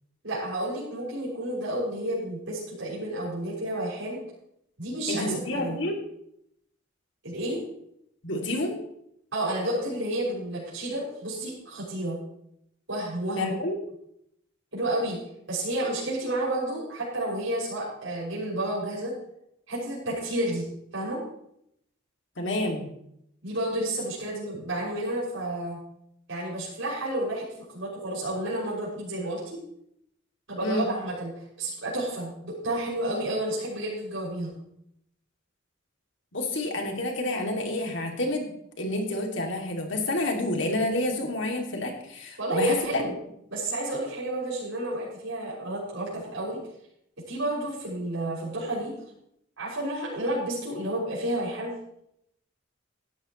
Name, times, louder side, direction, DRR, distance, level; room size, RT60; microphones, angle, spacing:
voice 1, 0.2-4.2 4.8-5.8 7.2-7.6 9.3-12.2 12.9-13.5 14.7-15.2 15.5-19.1 19.7-20.6 20.9-21.2 23.4-25.8 26.3-29.6 30.5-31.3 31.6-34.5 42.4-43.1 43.5-46.6 47.3-48.9 49.6-51.7, right 1 dB, 70° right, -7 dB, 6.5 m, -30 dB
voice 2, 5.1-6.0 8.2-8.8 13.4-13.8 22.4-22.9 30.6-30.9 36.3-43.0, left 1 dB, 60° left, 2 dB, 2.7 m, -29 dB
17.5 x 12.0 x 3.2 m, 0.75 s
head